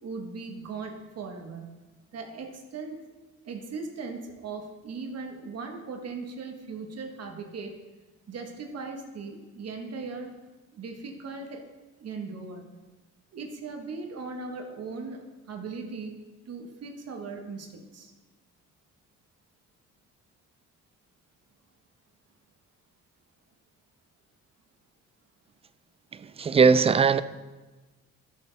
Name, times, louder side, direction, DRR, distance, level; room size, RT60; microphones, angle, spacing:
voice 1, 0.0-1.8 2.1-3.0 3.4-7.8 8.3-10.3 10.7-11.7 12.0-12.7 13.3-18.1, right 4 dB, 55° right, 4 dB, 1.4 m, -38 dB
voice 2, 26.1-27.2, right 5 dB, 20° right, 15 dB, 0.3 m, -20 dB
13.0 x 6.8 x 3.4 m, 1.2 s
cardioid pair, 90°, 30 cm